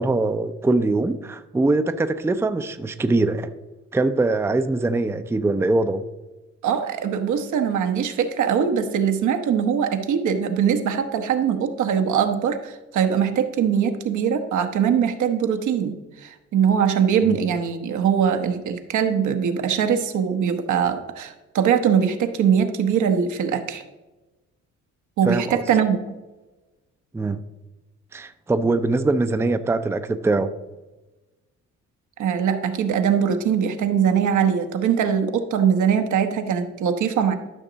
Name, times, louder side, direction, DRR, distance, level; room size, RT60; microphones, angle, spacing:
voice 1, 0.0-3.5 3.9-6.1 17.2-17.4 25.2-25.6 27.1-27.4 28.1-30.5, right 2 dB, 10° right, 10 dB, 0.5 m, -22 dB
voice 2, 6.6-23.8 25.2-26.0 32.2-37.4, right 7 dB, 75° right, 7 dB, 1.1 m, -22 dB
12.5 x 5.9 x 3.9 m, 1.1 s
cardioid pair, 90°, 30 cm